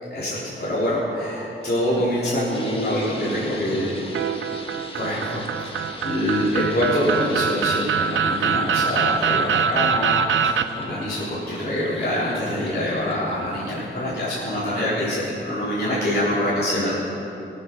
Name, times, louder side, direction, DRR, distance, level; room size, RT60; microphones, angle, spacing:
voice 1, 0.1-4.1 4.9-17.0, equal, 50° left, -9 dB, 3.9 m, -25 dB
sound 1, 1.6-14.1, left 1 dB, 25° left, 1.9 m, -40 dB
sound 2, 4.1-10.6, right 7 dB, 80° right, 0.5 m, -23 dB
18.0 x 8.2 x 6.0 m, 3.0 s
cardioid pair, 45°, 20 cm